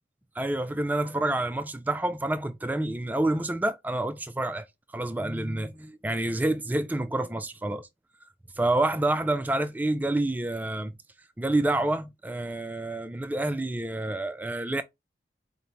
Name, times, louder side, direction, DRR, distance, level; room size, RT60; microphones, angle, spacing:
voice 1, 0.4-4.6 4.9-7.9 8.6-10.9 11.4-14.8, right 2 dB, 10° right, 0.3 m, -28 dB
5.2 x 2.1 x 3.0 m
head